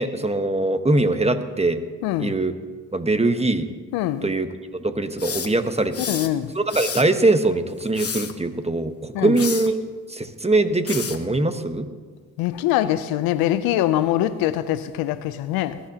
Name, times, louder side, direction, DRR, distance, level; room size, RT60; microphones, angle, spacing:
voice 1, 0.0-1.8 2.2-2.5 2.9-3.7 4.2-4.5 4.8-6.2 6.5-9.8 10.1-11.9, right 2 dB, 15° right, 9 dB, 1.2 m, -22 dB
voice 2, 2.0-2.3 3.9-4.3 6.1-6.5 9.1-9.4 12.4-15.8, left 13 dB, 85° left, 14 dB, 0.6 m, -23 dB
sound 1, 5.2-6.3 6.7-7.1 7.8-8.3 9.4-9.7 10.9-11.2, left 6 dB, 40° left, 1.2 m, -30 dB
21.5 x 11.0 x 2.9 m, 1.5 s
supercardioid pair, 45°, 35 cm